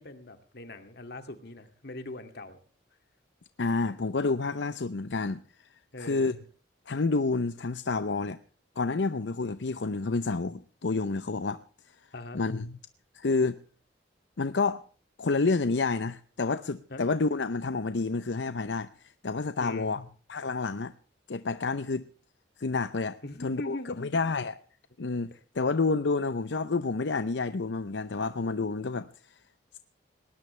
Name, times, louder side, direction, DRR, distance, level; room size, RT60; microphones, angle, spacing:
voice 1, 0.0-2.6 5.9-6.4 12.1-12.4 16.9-17.0 19.6-20.0 23.2-24.1, left 2 dB, 65° left, 2.4 m, -41 dB
voice 2, 3.6-5.4 6.0-6.4 6.9-8.4 8.8-11.6 12.3-12.8 13.1-13.6 14.4-14.8 15.2-20.0 20.3-20.9 21.3-22.1 22.6-24.6 25.0-29.1, left 3 dB, 85° left, 0.7 m, -29 dB
20.0 x 17.5 x 3.3 m
head